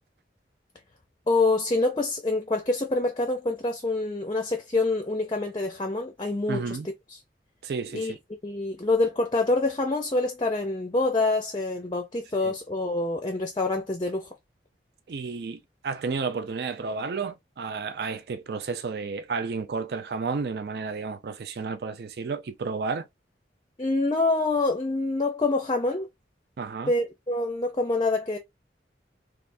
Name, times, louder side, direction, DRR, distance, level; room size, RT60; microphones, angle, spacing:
voice 1, 1.3-6.7 7.1-7.2 7.9-8.1 8.4-14.3 23.8-26.1 26.9-28.4, left 2 dB, 25° left, 0.5 m, -26 dB
voice 2, 6.5-6.9 7.6-8.2 12.4-12.5 15.1-23.0 26.6-26.9, right 4 dB, 60° right, 0.4 m, -32 dB
3.4 x 2.5 x 2.5 m
head